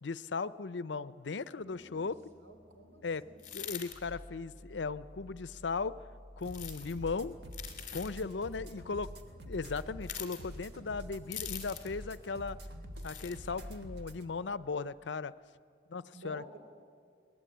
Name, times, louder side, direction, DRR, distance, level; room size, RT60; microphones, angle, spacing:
voice 1, 0.0-2.1 3.0-3.2 3.5-5.9 6.4-7.4 7.9-9.1 9.5-12.6 13.0-15.3 15.9-16.4, left 4 dB, 80° left, 16 dB, 0.6 m, -37 dB
voice 2, 1.5-3.4 8.0-8.9 16.1-16.6, right 1 dB, 85° right, 5 dB, 3.5 m, -53 dB
sound 1, 1.6-13.4, equal, 10° right, 7.4 m, -55 dB
sound 2, 3.4-4.0 6.4-6.9 7.5-8.1 10.0-10.4 11.3-11.9 13.0-13.4, left 10 dB, 45° left, 2.4 m, -43 dB
sound 3, 6.4-14.2, equal, 65° right, 1.7 m, -47 dB
22.5 x 18.5 x 9.1 m, 2.2 s
head